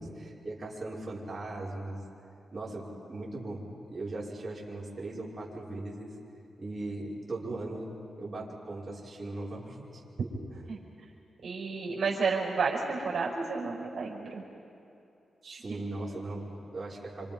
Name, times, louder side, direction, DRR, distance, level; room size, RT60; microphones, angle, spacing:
voice 1, 0.0-2.0 2.5-6.1 6.6-10.0 10.5-10.6 15.6-17.3, right 2 dB, 35° right, -6 dB, 5.7 m, -39 dB
voice 2, 11.4-14.4 15.4-15.8, right 4 dB, 70° right, -3 dB, 5.6 m, -31 dB
28.5 x 26.0 x 5.4 m, 2.7 s
cardioid pair, 70°, 0 cm